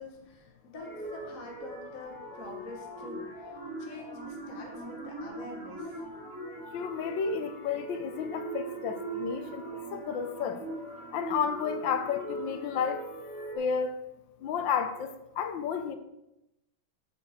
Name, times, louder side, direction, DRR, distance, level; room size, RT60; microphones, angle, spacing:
voice 1, 0.0-6.0, left 2 dB, 45° left, 0 dB, 1.6 m, -46 dB
sound 1, 0.7-13.6, right 2 dB, 45° right, 3.2 m, -41 dB
voice 2, 6.7-9.6 9.9-10.6 11.1-13.0 13.5-14.0 14.4-15.1 15.4-15.9, left 6 dB, 70° left, 9 dB, 1.3 m, -31 dB
7.7 x 4.6 x 6.5 m, 0.91 s
omnidirectional pair, 2.3 m